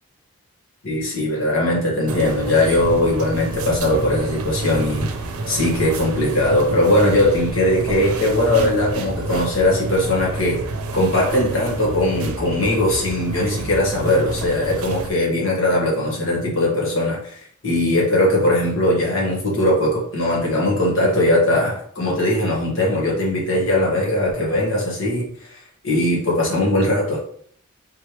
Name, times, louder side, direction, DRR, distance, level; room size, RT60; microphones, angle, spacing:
voice 1, 0.8-5.1 5.5-10.6 10.9-27.2, left 1 dB, 65° left, -4 dB, 1.6 m, -20 dB
sound 1, 2.1-15.1, right 2 dB, 80° right, 0.6 m, -29 dB
4.4 x 3.3 x 3.2 m, 0.62 s
head